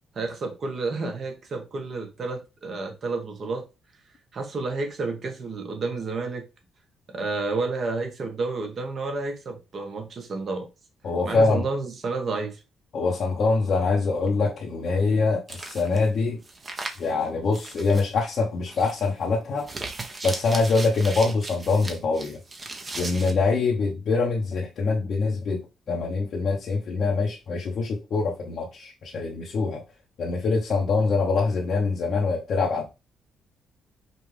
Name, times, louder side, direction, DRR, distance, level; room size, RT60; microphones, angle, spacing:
voice 1, 0.1-3.6 4.3-6.4 7.1-10.7 11.2-12.6, right 3 dB, 50° right, 1.3 m, -30 dB
voice 2, 11.0-11.6 12.9-16.4 17.0-19.7 20.2-22.4 23.0-25.6 25.9-29.8 30.2-32.9, left 4 dB, 60° left, 0.9 m, -24 dB
sound 1, 15.5-16.1 16.4-17.1 17.5-18.1 18.7-19.1 19.6-23.3, right 3 dB, 30° right, 0.9 m, -37 dB
5.3 x 2.5 x 3.3 m
cardioid pair, 90°, 0 cm